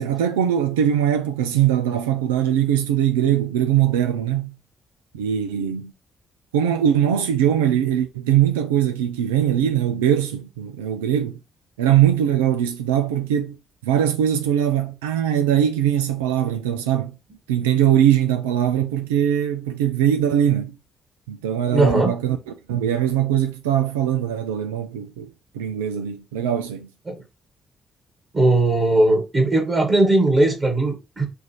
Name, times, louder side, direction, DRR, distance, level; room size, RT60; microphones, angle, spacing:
voice 1, 0.0-4.5 5.1-5.9 6.5-11.4 11.8-13.6 13.8-17.2 17.5-20.8 21.3-22.4 22.7-25.3 25.5-26.9, right 10 dB, 80° right, 0.3 m, -21 dB
voice 2, 21.7-22.1 27.1-27.2 28.3-31.3, right 2 dB, 35° right, 1.6 m, -18 dB
6.1 x 2.5 x 3.0 m
figure-of-eight pair, 40°, 0 cm